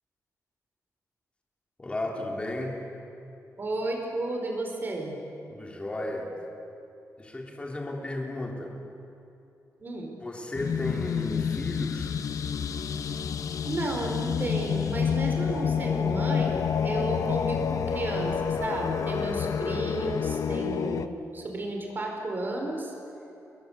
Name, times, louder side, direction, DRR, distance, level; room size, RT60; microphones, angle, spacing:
voice 1, 1.8-2.8 5.5-6.3 7.2-8.8 10.2-12.1, left 1 dB, 20° left, 1 dB, 3.5 m, -34 dB
voice 2, 3.6-5.2 9.8-10.1 13.6-22.9, right 2 dB, 35° right, 2 dB, 4.9 m, -32 dB
sound 1, 10.6-21.1, left 7 dB, 70° left, 1.0 m, -29 dB
29.5 x 21.0 x 8.2 m, 2.9 s
wide cardioid pair, 175°, 6 cm